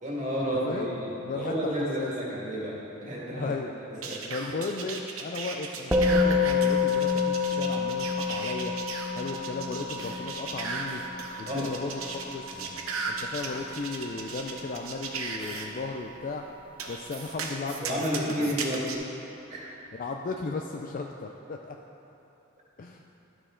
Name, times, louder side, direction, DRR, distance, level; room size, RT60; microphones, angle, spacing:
voice 1, 0.0-3.5 4.0-4.2 11.5-11.7 12.5-12.8 17.8-18.9 19.5-19.7, equal, 35° right, -5 dB, 1.9 m, -31 dB
voice 2, 1.2-2.1 3.4-3.7 4.3-8.7 9.1-11.0 11.4-12.6 13.1-16.4 16.9-18.6 19.9-21.8 22.8-23.0, left 3 dB, 40° left, 2 dB, 0.4 m, -35 dB
sound 1, 4.0-15.7 16.8-19.0, right 4 dB, 90° right, 0.8 m, -36 dB
Musical instrument, 5.9-15.4, left 4 dB, 5° right, 0.6 m, -29 dB
12.0 x 6.3 x 3.8 m, 2.9 s
head